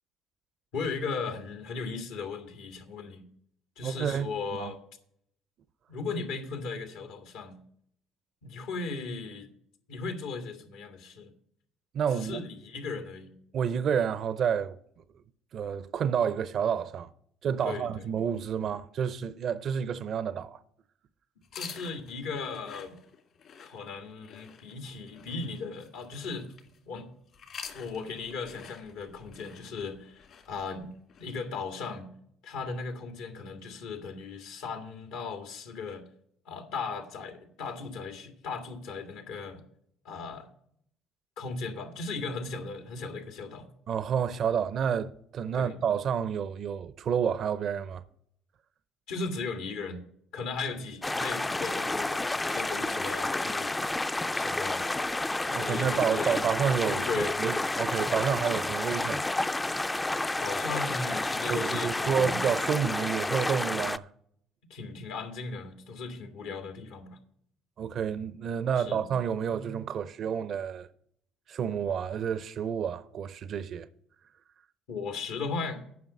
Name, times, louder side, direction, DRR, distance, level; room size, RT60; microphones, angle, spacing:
voice 1, 0.7-3.3 3.8-4.8 5.9-7.6 8.4-9.5 9.9-11.3 12.1-13.3 17.6-17.9 21.5-23.0 23.6-26.5 26.9-27.1 27.7-30.9 31.2-32.1 32.4-36.0 36.5-39.6 40.0-40.5 41.4-43.7 45.5-45.8 49.1-50.0 50.3-53.7 54.3-54.9 55.4-56.4 56.9-57.4 60.4-62.4 64.7-67.2 68.7-69.1 74.9-75.8, left 4 dB, 85° left, 1.8 m, -37 dB
voice 2, 3.8-4.7 11.9-12.4 13.5-14.8 15.5-17.1 17.4-20.6 43.9-48.0 55.5-59.4 61.5-64.1 67.8-70.9 71.5-73.9, right 7 dB, 55° right, 0.5 m, -29 dB
sound 1, 21.4-26.8 27.3-31.3, left 7 dB, 60° left, 2.1 m, -48 dB
sound 2, 51.0-64.0, left 2 dB, 15° left, 0.4 m, -30 dB
9.4 x 5.7 x 8.2 m
supercardioid pair, 75°, 0 cm